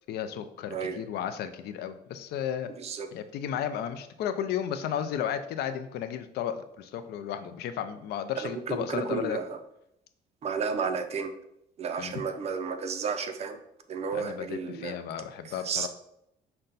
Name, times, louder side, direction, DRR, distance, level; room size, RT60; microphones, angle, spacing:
voice 1, 0.1-2.7 3.1-9.4 12.0-12.2 14.1-15.9, left 9 dB, 70° left, 9 dB, 0.5 m, -33 dB
voice 2, 2.8-3.1 8.4-9.6 10.4-11.3 11.8-13.6 13.9-15.0 15.4-15.9, right 6 dB, 40° right, 7 dB, 0.5 m, -32 dB
5.4 x 2.2 x 3.9 m, 0.78 s
cardioid pair, 110°, 17 cm